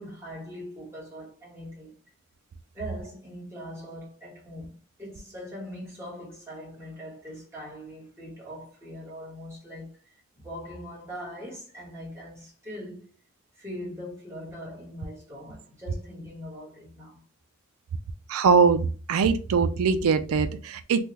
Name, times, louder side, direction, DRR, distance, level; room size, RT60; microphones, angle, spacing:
voice 1, 0.0-1.9 2.7-13.1 13.5-17.2, equal, 10° right, 1.2 m, -41 dB
voice 2, 18.3-21.0, right 5 dB, 85° right, 0.4 m, -22 dB
3.4 x 2.2 x 2.9 m
head